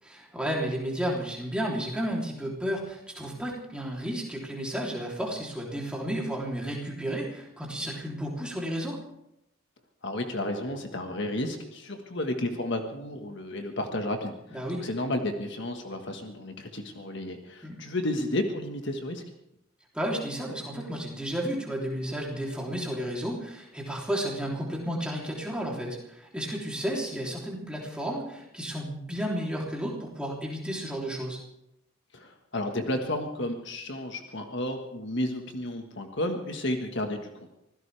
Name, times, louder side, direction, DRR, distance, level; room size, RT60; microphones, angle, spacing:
voice 1, 0.0-9.0 14.5-14.8 17.6-17.8 19.9-31.4, equal, 5° right, -3 dB, 3.3 m, -32 dB
voice 2, 10.0-19.2 32.1-37.5, left 1 dB, 55° left, 4 dB, 1.6 m, -32 dB
24.5 x 16.0 x 3.5 m, 0.82 s
head